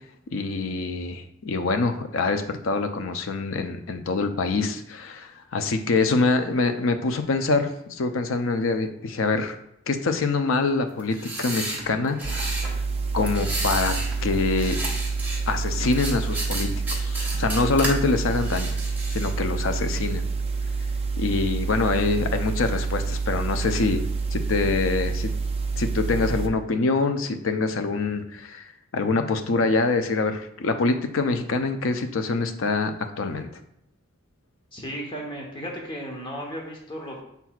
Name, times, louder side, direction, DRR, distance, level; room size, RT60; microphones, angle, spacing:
voice 1, 0.3-9.6 9.9-12.8 13.1-14.8 15.5-18.7 19.1-20.3 21.2-25.3 25.8-28.6 28.9-33.5, left 3 dB, 75° left, 7 dB, 0.6 m, -25 dB
sound 1, 11.0-12.7 13.2-14.2 14.4-15.4 15.9-17.9 18.3-19.3, right 2 dB, 10° right, 1.5 m, -32 dB
sound 2, 12.2-26.5, right 4 dB, 30° right, 0.6 m, -28 dB
voice 2, 34.7-37.2, equal, 25° left, 0 dB, 1.0 m, -35 dB
6.8 x 5.9 x 2.4 m, 0.76 s
head